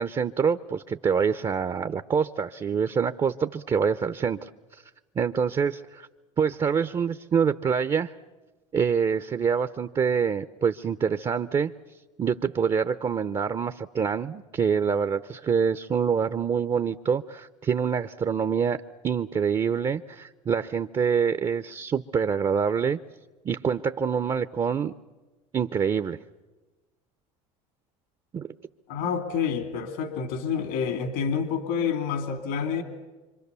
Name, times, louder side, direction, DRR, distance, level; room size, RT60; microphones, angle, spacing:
voice 1, 0.0-4.8 5.2-6.1 6.4-8.1 8.7-11.7 12.2-23.0 23.4-24.9 25.5-26.2 28.3-28.5, right 6 dB, 30° right, 11 dB, 0.8 m, -26 dB
voice 2, 28.9-32.8, left 7 dB, 75° left, 7 dB, 2.4 m, -28 dB
26.0 x 25.5 x 6.9 m, 1.2 s
supercardioid pair, 90°, 17 cm